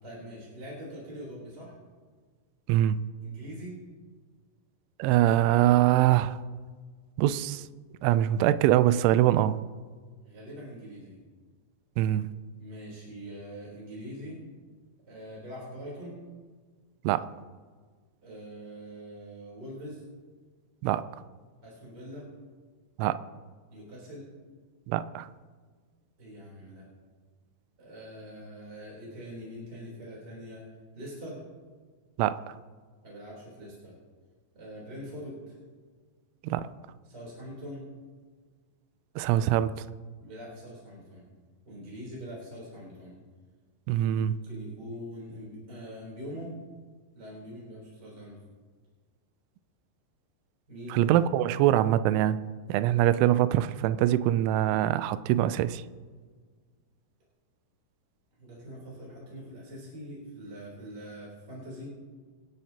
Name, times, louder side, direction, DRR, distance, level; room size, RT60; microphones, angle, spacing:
voice 1, 0.0-1.7 3.2-3.7 10.2-11.2 12.6-14.4 15.1-16.2 18.2-20.0 21.6-22.3 23.7-24.3 26.2-26.9 27.8-30.6 30.9-31.4 33.0-33.9 34.5-35.6 37.1-37.8 40.2-41.2 41.6-43.1 43.9-46.5 47.1-48.4 50.7-51.1 58.4-61.9, equal, 25° right, -5 dB, 3.7 m, -43 dB
voice 2, 5.0-6.4 7.2-7.7 8.0-9.6 12.0-12.3 17.0-17.3 20.8-21.0 23.0-23.2 24.9-25.3 32.2-32.4 36.4-36.7 39.2-39.7 43.9-44.3 50.9-52.4 52.7-55.8, right 13 dB, 85° right, 13 dB, 3.0 m, -23 dB
27.0 x 10.5 x 2.9 m, 1.5 s
omnidirectional pair, 5.5 m